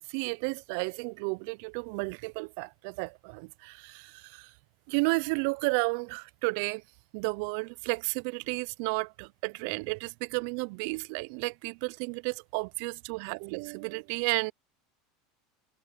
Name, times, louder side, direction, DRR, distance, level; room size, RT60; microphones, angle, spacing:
voice 1, 0.1-4.5 4.9-6.8 7.1-14.5, right 31 dB, 65° right, 0.3 m, -32 dB
supercardioid pair, 115°, 0 cm